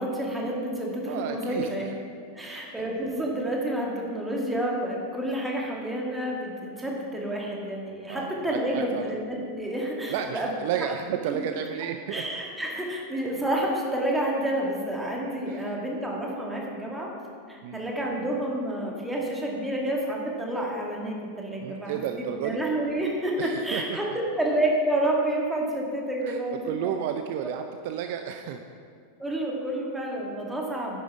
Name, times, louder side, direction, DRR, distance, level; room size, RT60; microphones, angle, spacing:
voice 1, 0.0-1.9 2.3-10.5 11.3-11.4 12.1-17.1 17.5-26.9 29.2-31.0, right 1 dB, 5° right, -2 dB, 2.2 m, -29 dB
voice 2, 1.1-1.9 2.4-2.6 8.1-9.1 10.1-12.2 15.5-15.6 17.6-17.8 21.6-22.6 23.4-24.2 26.2-26.4 26.6-28.6, right 9 dB, 50° right, 6 dB, 0.5 m, -32 dB
10.0 x 8.9 x 4.7 m, 2.2 s
figure-of-eight pair, 90°, 0 cm